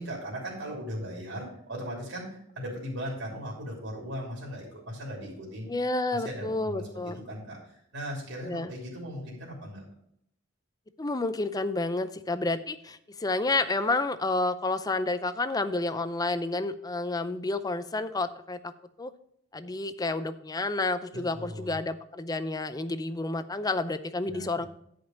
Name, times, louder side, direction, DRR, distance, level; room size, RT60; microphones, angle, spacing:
voice 1, 0.0-5.7 6.1-9.8 21.1-21.8 24.3-24.6, equal, 70° right, -3 dB, 3.1 m, -38 dB
voice 2, 5.7-7.2 8.4-8.7 11.0-18.7 19.0-19.1 19.5-24.7, left 2 dB, 20° left, 12 dB, 0.5 m, -30 dB
10.5 x 5.3 x 5.3 m, 0.72 s
head